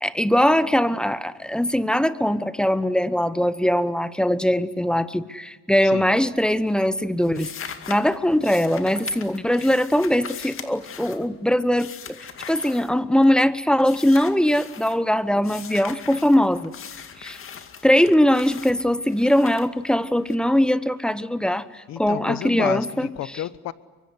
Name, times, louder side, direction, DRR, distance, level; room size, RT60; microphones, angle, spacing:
voice 1, 0.0-12.2 12.5-16.7 17.2-17.4 17.8-23.1, equal, 5° left, 15 dB, 1.0 m, -21 dB
sound 1, 6.0-6.4 6.7-13.4 13.8-15.0 15.4-20.3, left 7 dB, 40° left, 2.2 m, -40 dB
voice 2, 21.9-23.7, left 13 dB, 55° left, 16 dB, 1.2 m, -31 dB
24.5 x 24.0 x 9.7 m, 1.2 s
supercardioid pair, 105°, 32 cm